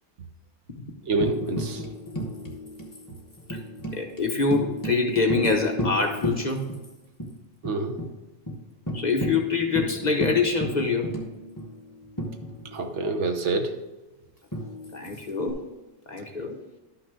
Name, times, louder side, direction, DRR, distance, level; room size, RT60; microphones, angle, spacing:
voice 1, 1.1-1.8 7.6-8.0 12.7-13.8, right 3 dB, 70° right, 5 dB, 1.2 m, -27 dB
Tambourine, 1.2-6.9 7.2-7.3 7.6-8.1 8.5-8.6 8.9-13.0 14.5-15.5, equal, 15° left, 1.2 m, -33 dB
voice 2, 3.9-6.7 8.9-11.1 14.9-15.6 16.1-16.6, left 4 dB, 40° left, 2 dB, 1.0 m, -25 dB
12.0 x 5.9 x 3.7 m, 1.1 s
omnidirectional pair, 1.3 m